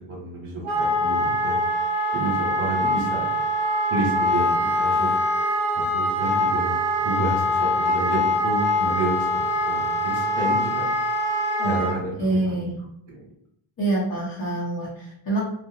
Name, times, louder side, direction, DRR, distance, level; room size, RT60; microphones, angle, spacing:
voice 1, 0.1-1.6 2.1-3.3 3.9-5.1 5.7-6.7 7.0-10.8 11.6-12.7 13.1-13.2, right 2 dB, 80° right, -5 dB, 1.1 m, -30 dB
Wind instrument woodwind instrument, 0.6-12.0, left 1 dB, 15° right, 0.6 m, -23 dB
voice 2, 12.2-12.7 13.8-15.4, right 2 dB, 45° left, -8 dB, 0.8 m, -25 dB
2.4 x 2.1 x 2.7 m, 0.72 s
wide cardioid pair, 125°, 50 cm